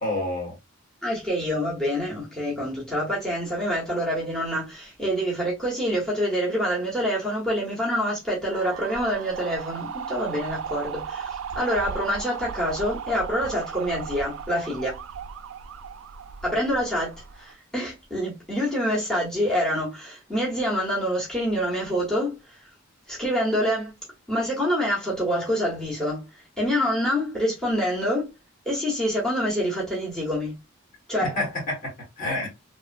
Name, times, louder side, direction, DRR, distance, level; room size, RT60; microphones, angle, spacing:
voice 1, 0.0-0.5 31.2-32.5, left 1 dB, 40° left, 1.4 m, -29 dB
voice 2, 1.0-15.0 16.4-22.6 23.1-23.9 24.3-28.3 28.6-30.5 31.1-31.4, equal, 5° left, 1.0 m, -26 dB
sound 1, 8.5-17.5, right 7 dB, 75° right, 0.3 m, -36 dB
2.9 x 2.2 x 2.5 m
head